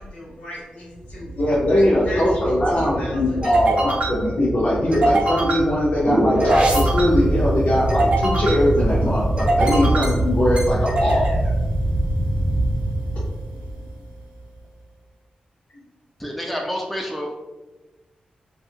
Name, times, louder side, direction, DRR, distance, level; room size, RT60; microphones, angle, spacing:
voice 1, 0.0-1.3 1.6-4.3, left 1 dB, 70° left, -5 dB, 1.2 m, -36 dB
sound 1, 1.1-13.8, right 1 dB, 45° right, 0.6 m, -22 dB
voice 2, 1.4-11.3, left 1 dB, 55° left, -7 dB, 0.7 m, -21 dB
voice 3, 16.2-17.4, equal, ahead, 0 dB, 0.3 m, -28 dB
2.6 x 2.4 x 2.7 m, 1.1 s
wide cardioid pair, 115°, 3 cm